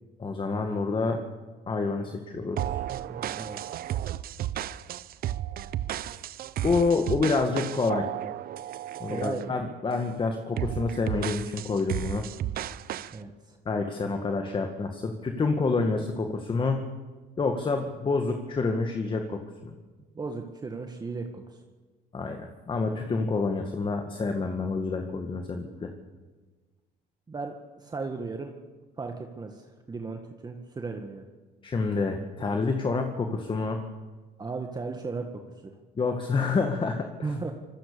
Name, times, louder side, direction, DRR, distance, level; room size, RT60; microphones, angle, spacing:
voice 1, 0.2-1.2 1.7-2.8 6.6-8.1 9.0-12.2 13.7-16.9 17.4-19.8 22.1-25.9 31.6-33.8 36.0-37.3, left 4 dB, 30° left, 5 dB, 2.0 m, -28 dB
sound 1, 2.6-9.5 9.9-10.2 10.6-13.2, right 12 dB, 60° right, 0.8 m, -33 dB
voice 2, 3.1-3.7 9.1-9.5 13.1-13.6 20.2-21.4 27.3-28.5 29.0-31.3 34.4-35.3 35.6-35.7 37.2-37.5, right 4 dB, 25° right, 4 dB, 1.8 m, -36 dB
25.5 x 20.0 x 7.0 m, 1.3 s
cardioid pair, 110°, 17 cm